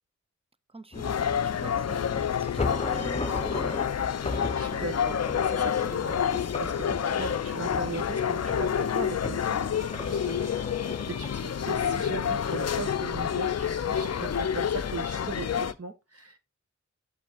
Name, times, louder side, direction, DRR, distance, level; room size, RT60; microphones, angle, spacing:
voice 1, 0.7-3.8 10.8-11.0, right 3 dB, 20° right, 0.6 m, -45 dB
sound 1, 0.9-15.7, left 8 dB, 55° left, 0.4 m, -29 dB
sound 2, 0.9-15.8, left 3 dB, 20° left, 0.7 m, -38 dB
voice 2, 4.6-10.5 10.8-10.9 11.2-16.4, right 3 dB, 50° right, 1.4 m, -39 dB
sound 3, 5.7-7.3 7.9-10.6 10.8-12.9 13.3-14.7, right 2 dB, 90° right, 2.3 m, -61 dB
8.2 x 7.6 x 2.4 m
wide cardioid pair, 60°, 30 cm